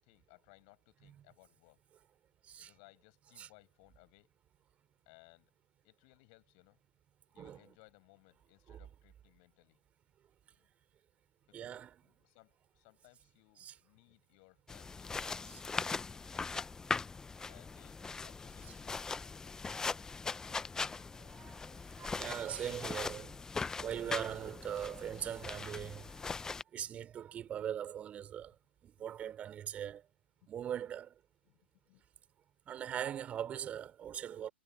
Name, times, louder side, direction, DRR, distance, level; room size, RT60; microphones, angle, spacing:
voice 1, 0.0-1.8 2.6-4.3 5.1-5.5 5.8-6.8 7.3-9.8 10.5-10.7 11.5-16.3 17.4-19.0 26.5-26.8 30.4-30.5 31.4-32.0, left 37 dB, 40° left, 7.5 m, -64 dB
voice 2, 11.5-11.9 13.6-13.8 15.5-15.6 18.6-18.7 21.1-23.4 23.8-26.3 26.7-28.5 28.8-30.1 30.5-31.1 32.7-34.5, right 10 dB, 20° right, 5.1 m, -41 dB
sound 1, 14.7-26.6, left 4 dB, 10° left, 1.2 m, -40 dB
figure-of-eight pair, 110°, 7 cm